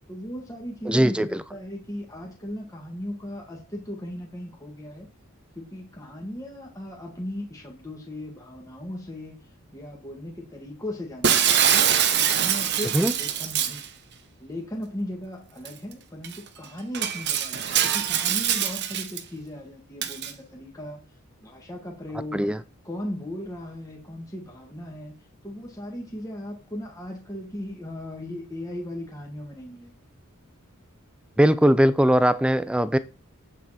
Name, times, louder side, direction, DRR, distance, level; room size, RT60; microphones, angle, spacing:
voice 1, 0.1-5.1 5.6-9.4 9.7-11.9 12.2-13.8 14.4-21.0 21.4-22.5 22.8-25.1 25.4-29.9, left 1 dB, 15° left, 2.0 m, -37 dB
voice 2, 0.9-1.4 12.9-13.1 22.3-22.6 31.4-33.0, equal, 5° right, 0.4 m, -20 dB
Shatter, 11.2-13.9 15.7-15.8 16.2-16.4 16.9-19.2 20.0-20.3, right 9 dB, 50° right, 0.9 m, -23 dB
8.3 x 7.5 x 4.3 m
head